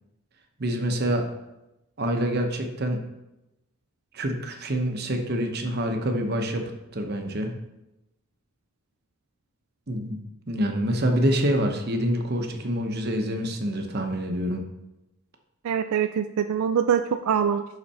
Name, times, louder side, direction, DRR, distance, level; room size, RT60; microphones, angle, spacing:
voice 1, 0.6-1.2 2.0-3.0 4.1-6.6 6.9-7.5 9.9-10.2 10.5-14.6, equal, 45° right, 4 dB, 0.9 m, -26 dB
voice 2, 15.6-17.6, right 7 dB, 80° right, 8 dB, 0.3 m, -24 dB
11.0 x 4.0 x 4.3 m, 0.93 s
head